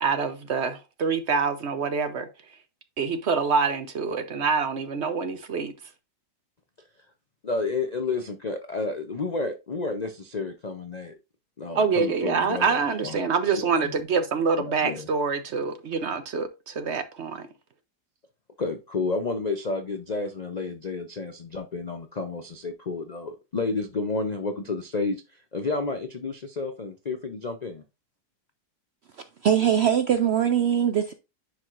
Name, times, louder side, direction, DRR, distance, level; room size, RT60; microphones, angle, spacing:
voice 1, 0.0-2.3 3.0-5.7 11.7-17.5, right 5 dB, 55° right, 0.8 m, -26 dB
voice 2, 7.4-11.1 11.6-12.8 13.0-13.2 13.5-13.9 14.6-15.1 18.6-27.8, left 3 dB, 60° left, 0.4 m, -31 dB
voice 3, 29.4-31.1, right 9 dB, 85° right, 0.5 m, -21 dB
10.5 x 4.7 x 2.5 m
omnidirectional pair, 1.8 m